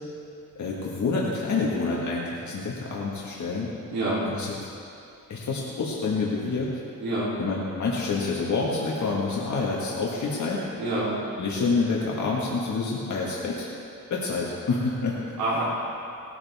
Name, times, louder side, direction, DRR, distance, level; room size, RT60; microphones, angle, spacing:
voice 1, 0.6-3.7 4.2-4.5 5.3-6.7 7.4-10.7 11.4-13.7 14.1-15.4, left 4 dB, 50° left, -4 dB, 1.8 m, -27 dB
voice 2, 3.9-4.2 7.0-7.3 10.8-11.1 15.4-15.6, right 2 dB, 80° right, -8 dB, 3.5 m, -26 dB
19.5 x 12.0 x 3.6 m, 2.6 s
cardioid pair, 145°, 36 cm